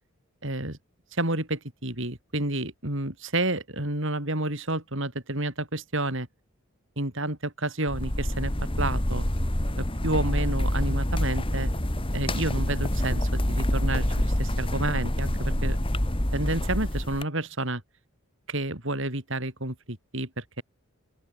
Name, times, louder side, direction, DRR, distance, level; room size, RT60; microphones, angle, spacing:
voice 1, 0.4-0.8 1.1-6.3 7.0-8.5 8.8-9.2 9.8-11.7 12.1-15.8 16.3-17.8 18.5-20.6, right 2 dB, 55° right, 4.6 m, -30 dB
sound 1, 7.9-17.2, left 1 dB, 25° left, 2.2 m, -27 dB
open air
head